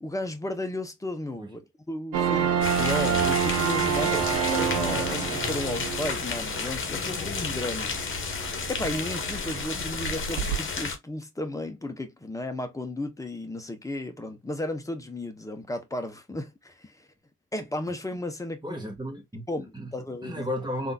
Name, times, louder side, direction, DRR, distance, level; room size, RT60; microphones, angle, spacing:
voice 1, 0.0-1.6 1.9-8.4 8.7-17.1 17.5-18.8 19.5-20.5, left 1 dB, 10° left, 0.8 m, -34 dB
sound 1, 2.1-10.6, right 8 dB, 85° right, 0.8 m, -29 dB
sound 2, 2.6-11.0, left 5 dB, 40° left, 1.1 m, -32 dB
voice 2, 18.6-19.9 20.2-20.9, equal, 15° right, 1.6 m, -34 dB
3.6 x 2.7 x 2.3 m
cardioid pair, 90°, 30 cm